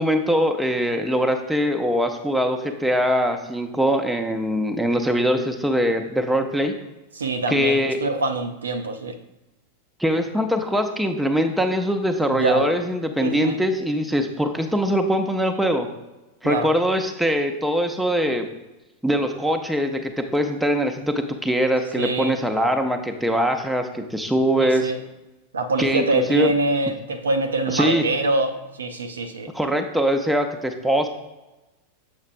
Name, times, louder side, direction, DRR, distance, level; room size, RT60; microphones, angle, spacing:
voice 1, 0.0-6.7 7.5-8.0 10.0-15.9 16.4-18.5 19.0-24.9 25.8-26.5 27.7-28.1 29.5-31.1, equal, ahead, 4 dB, 0.6 m, -22 dB
voice 2, 7.2-9.1 12.3-12.7 13.2-13.6 16.4-16.7 21.9-22.4 24.6-25.0 25.5-29.5, right 2 dB, 70° right, 7 dB, 0.5 m, -24 dB
7.3 x 5.9 x 2.5 m, 1.0 s
figure-of-eight pair, 90°, 0 cm